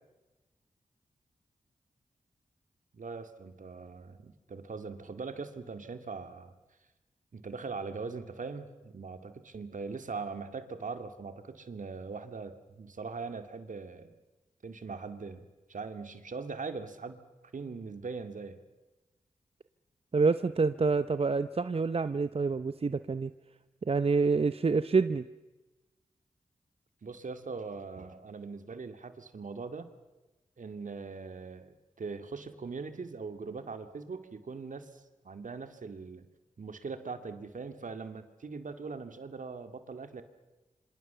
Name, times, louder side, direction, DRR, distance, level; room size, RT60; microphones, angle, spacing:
voice 1, 2.9-6.5 7.3-14.1 14.6-17.2 17.5-18.6 27.0-29.9 30.6-36.3 36.6-40.2, right 4 dB, 70° right, 9 dB, 2.2 m, -41 dB
voice 2, 20.1-23.3 23.9-25.2, right 4 dB, 45° right, 12 dB, 0.8 m, -27 dB
26.5 x 26.0 x 6.9 m, 1.1 s
cardioid pair, 45°, 14 cm